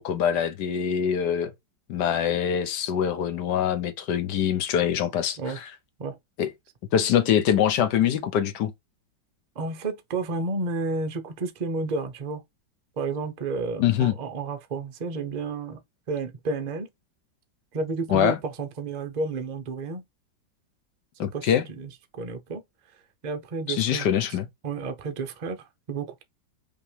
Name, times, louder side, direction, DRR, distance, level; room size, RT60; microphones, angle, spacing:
voice 1, 0.0-1.5 1.9-5.6 6.4-6.5 6.9-8.7 13.8-14.1 18.1-18.4 21.2-21.6 23.7-24.5, left 9 dB, 70° left, 1.3 m, -24 dB
voice 2, 9.6-12.4 13.0-15.8 16.1-16.9 17.7-20.0 21.3-22.6 23.2-24.1 24.6-26.2, right 3 dB, 50° right, 0.5 m, -31 dB
5.3 x 3.0 x 3.3 m
omnidirectional pair, 2.0 m